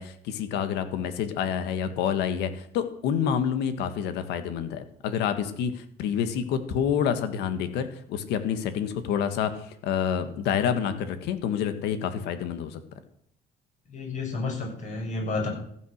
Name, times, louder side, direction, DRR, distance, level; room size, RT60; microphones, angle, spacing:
voice 1, 0.0-12.8, left 8 dB, 90° left, 10 dB, 1.8 m, -28 dB
voice 2, 13.9-15.5, left 3 dB, 45° left, 1 dB, 6.8 m, -30 dB
15.0 x 9.3 x 6.6 m, 0.68 s
cardioid pair, 110°, 17 cm